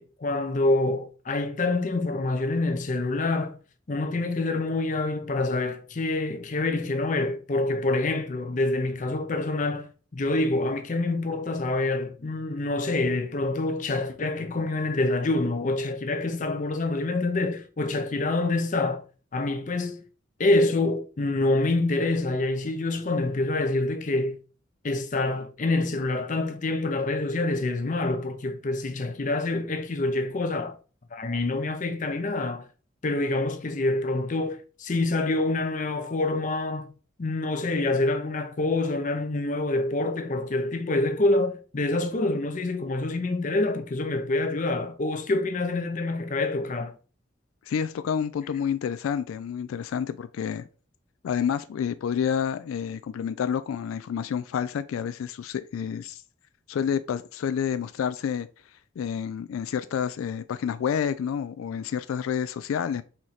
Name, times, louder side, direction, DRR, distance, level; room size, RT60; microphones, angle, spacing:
voice 1, 0.0-3.6 3.9-9.9 10.1-19.0 19.3-20.0 20.4-24.4 24.8-30.7 31.1-32.6 33.0-36.9 37.2-46.9, left 2 dB, 40° left, 0.5 m, -26 dB
voice 2, 47.7-50.6 51.2-56.2 56.7-58.5 59.0-63.0, left 7 dB, 85° left, 0.3 m, -29 dB
4.3 x 3.1 x 3.9 m
head